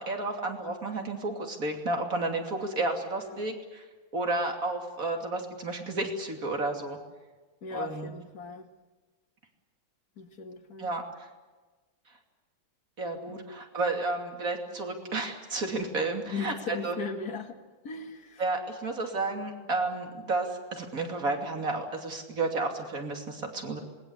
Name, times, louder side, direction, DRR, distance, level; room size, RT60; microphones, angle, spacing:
voice 1, 0.0-3.8 4.1-7.0 7.7-8.1 10.8-11.0 13.0-16.9 18.4-23.8, right 2 dB, 40° right, 3 dB, 3.3 m, -32 dB
voice 2, 3.2-3.5 7.6-8.7 10.2-10.9 13.3-13.4 16.3-17.6 17.8-18.5, left 5 dB, 45° left, 6 dB, 2.2 m, -38 dB
27.0 x 20.5 x 8.2 m, 1.3 s
omnidirectional pair, 2.3 m